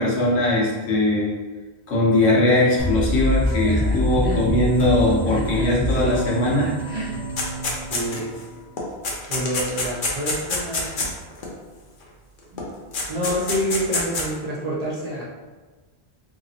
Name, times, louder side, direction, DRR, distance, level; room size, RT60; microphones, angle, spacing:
voice 1, 0.0-1.3 1.9-6.7, left 1 dB, 75° left, -5 dB, 1.1 m, -20 dB
sound 1, 2.8-8.4, left 1 dB, 5° right, 0.5 m, -26 dB
voice 2, 3.5-4.4 5.3-6.5 6.8-7.2 7.9-8.3 9.3-11.1 12.5-12.6 13.1-15.2, equal, 45° right, -5 dB, 0.6 m, -29 dB
sound 2, 7.4-8.4 8.8-11.5 12.6-12.7 12.9-14.3, left 3 dB, 55° left, 0.7 m, -26 dB
2.9 x 2.8 x 2.7 m, 1.3 s
omnidirectional pair, 1.1 m